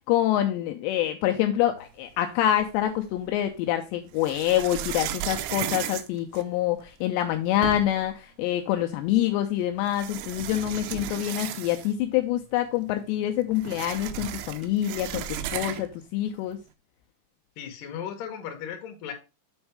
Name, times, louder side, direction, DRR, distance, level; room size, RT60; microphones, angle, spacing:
voice 1, 0.1-16.6, left 12 dB, 80° left, 2.7 m, -26 dB
sound 1, 2.6-3.4 4.1-6.9 7.3-7.4 7.6-8.1 9.2-9.3 9.9-12.1 12.4-12.5 12.8-16.0, right 11 dB, 90° right, 3.0 m, -35 dB
voice 2, 17.6-19.1, left 8 dB, 60° left, 2.6 m, -36 dB
8.0 x 4.5 x 4.6 m
omnidirectional pair, 5.3 m